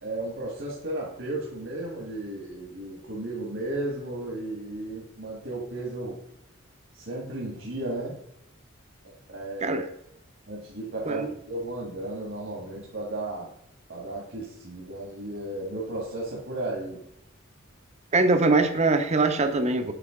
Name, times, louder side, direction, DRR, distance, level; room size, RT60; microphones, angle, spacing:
voice 1, 0.0-6.2 6.9-8.2 9.3-9.9 10.5-13.5 13.9-17.0, right 2 dB, 60° right, -3 dB, 1.7 m, -34 dB
voice 2, 18.1-19.9, right 3 dB, 35° right, 7 dB, 0.7 m, -22 dB
8.1 x 5.1 x 3.7 m, 0.80 s
head